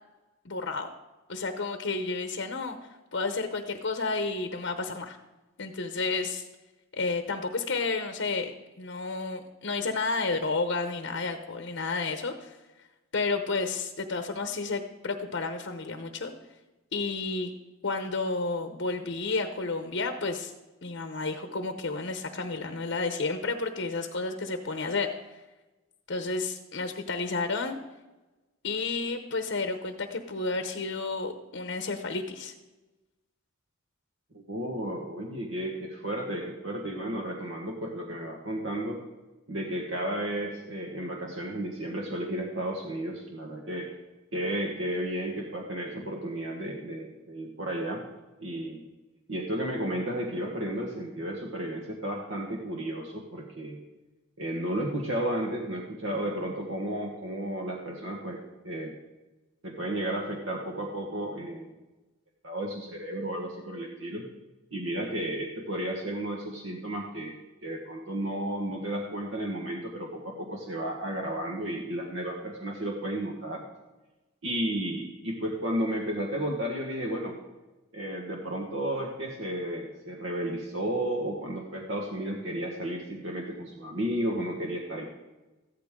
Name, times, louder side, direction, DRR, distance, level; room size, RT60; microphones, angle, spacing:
voice 1, 0.4-0.9 1.3-2.8 3.1-5.2 5.6-6.5 6.9-8.5 8.8-12.6 13.1-16.3 16.9-17.5 17.8-20.5 20.8-25.4 26.1-27.8 28.6-32.5, left 3 dB, 60° left, 7 dB, 0.9 m, -31 dB
voice 2, 34.3-39.0 39.5-43.9 44.3-48.0 48.4-48.8 49.3-53.8 54.4-58.9 59.6-61.7 62.4-64.2 64.7-67.3 67.6-73.6 74.4-77.4 77.9-85.1, right 1 dB, 65° right, 0 dB, 1.5 m, -33 dB
14.5 x 13.0 x 3.7 m, 1.1 s
head